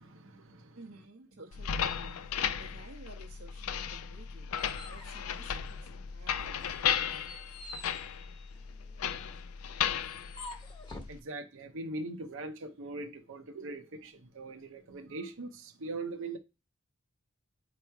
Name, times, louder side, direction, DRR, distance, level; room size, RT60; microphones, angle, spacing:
voice 1, 0.0-0.8 2.5-2.6 4.8-4.9 11.1-16.4, right 2 dB, 65° right, 0.8 m, -41 dB
voice 2, 0.7-7.3, right 2 dB, 85° right, 1.1 m, -54 dB
sound 1, 1.5-11.2, left 8 dB, 85° left, 0.4 m, -35 dB
sound 2, 4.1-6.1 6.5-11.2, left 2 dB, 20° left, 1.0 m, -49 dB
9.0 x 3.0 x 4.6 m
head